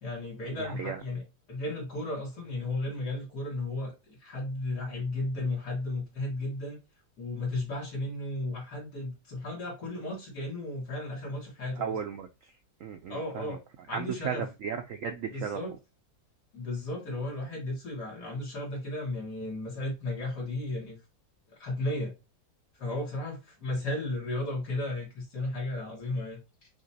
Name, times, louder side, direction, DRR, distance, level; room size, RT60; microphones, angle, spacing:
voice 1, 0.0-1.2 1.5-6.8 7.2-12.0 13.1-13.6 13.9-14.5 15.2-15.7 16.5-21.0 21.5-22.1 22.7-26.7, left 2 dB, 65° left, 2.3 m, -34 dB
voice 2, 0.6-1.0 11.8-12.3 12.8-13.6 13.9-15.6, right 7 dB, 75° right, 0.7 m, -35 dB
5.9 x 2.9 x 2.7 m
omnidirectional pair, 1.9 m